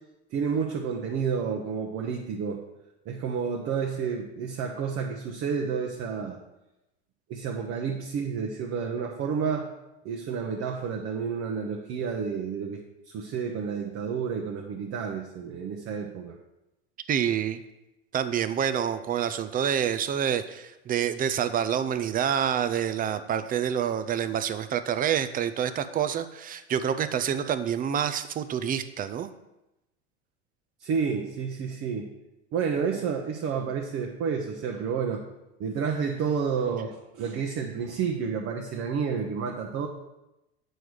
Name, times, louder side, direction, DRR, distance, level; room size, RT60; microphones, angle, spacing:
voice 1, 0.3-2.6 3.1-6.4 7.3-9.7 10.0-16.4 30.8-32.1 32.5-35.2 35.6-39.9, right 6 dB, 45° right, 1 dB, 0.9 m, -30 dB
voice 2, 17.1-17.6 18.1-29.3, right 8 dB, 25° right, 11 dB, 0.5 m, -27 dB
7.7 x 4.7 x 4.8 m, 0.93 s
hypercardioid pair, 90°, 32 cm